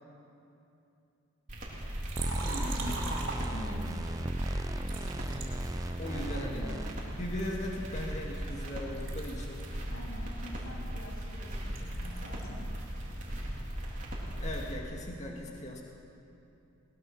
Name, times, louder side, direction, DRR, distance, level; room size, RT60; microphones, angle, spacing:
sound 1, 1.5-14.7, equal, 40° right, 3.6 m, -38 dB
Liquid, 2.0-4.0 4.8-6.4 6.9-8.7 8.9-12.6 12.9-14.5, right 2 dB, 70° right, 4.1 m, -42 dB
sound 2, 2.1-6.9, right 1 dB, 15° right, 0.5 m, -37 dB
voice 1, 2.4-3.1 6.0-6.7 7.1-9.6 14.4-15.8, left 1 dB, 35° left, -1 dB, 1.9 m, -39 dB
voice 2, 3.2-4.0 6.1-6.8 9.9-12.7, left 1 dB, 90° left, -3 dB, 3.4 m, -46 dB
22.0 x 19.5 x 6.0 m, 2.8 s
head